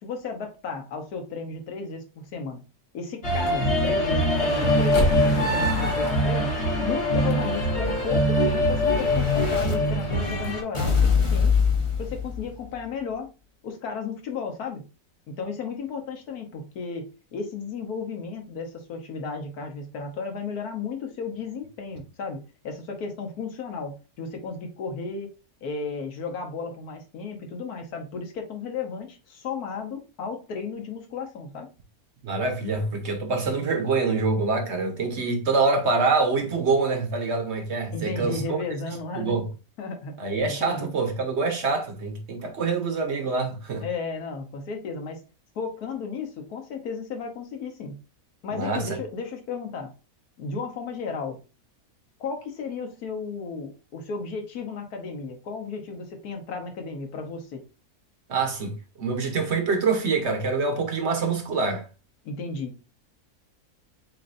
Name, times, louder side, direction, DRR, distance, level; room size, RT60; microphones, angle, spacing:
voice 1, 0.0-2.6 2.9-6.5 6.8-11.0 11.3-11.6 12.0-13.3 13.6-14.8 15.3-22.4 22.6-25.3 25.6-31.7 37.9-39.5 39.8-40.2 40.5-40.9 43.8-45.2 45.5-48.0 48.4-49.9 50.4-51.4 52.2-57.6 62.2-62.8, left 4 dB, 85° left, 1.5 m, -34 dB
sound 1, 3.2-10.6, left 1 dB, 50° left, 1.3 m, -23 dB
Explosion, 6.4-9.7 10.7-12.8, left 6 dB, 25° left, 0.9 m, -26 dB
voice 2, 32.2-38.4 39.1-39.5 40.2-43.9 48.5-48.9 58.3-61.8, right 4 dB, 50° right, 1.1 m, -25 dB
7.4 x 2.6 x 2.6 m
omnidirectional pair, 1.6 m